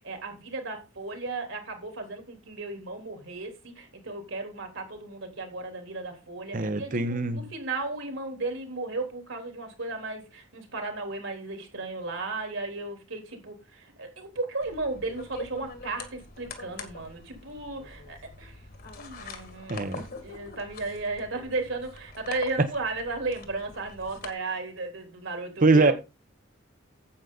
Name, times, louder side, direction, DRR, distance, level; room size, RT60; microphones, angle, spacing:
voice 1, 0.0-18.6 18.9-19.8 20.2-25.9, right 3 dB, 70° right, 3.6 m, -35 dB
voice 2, 6.5-7.5 19.7-20.0 25.6-25.9, right 3 dB, 45° right, 0.9 m, -22 dB
sound 1, 14.6-24.3, left 3 dB, 50° left, 2.0 m, -44 dB
9.6 x 8.1 x 4.0 m
head